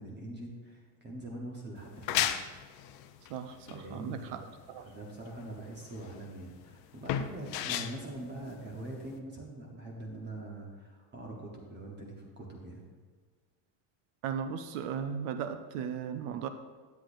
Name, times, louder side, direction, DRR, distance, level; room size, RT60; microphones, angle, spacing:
voice 1, 0.0-2.3 3.7-4.4 4.8-12.8, right 1 dB, 25° right, -1 dB, 0.9 m, -43 dB
sound 1, 1.8-9.2, left 10 dB, 55° left, 0.5 m, -36 dB
voice 2, 3.3-4.9 14.2-16.5, right 7 dB, 65° right, 9 dB, 0.6 m, -37 dB
10.0 x 8.1 x 2.6 m, 1.5 s
cardioid pair, 160°, 47 cm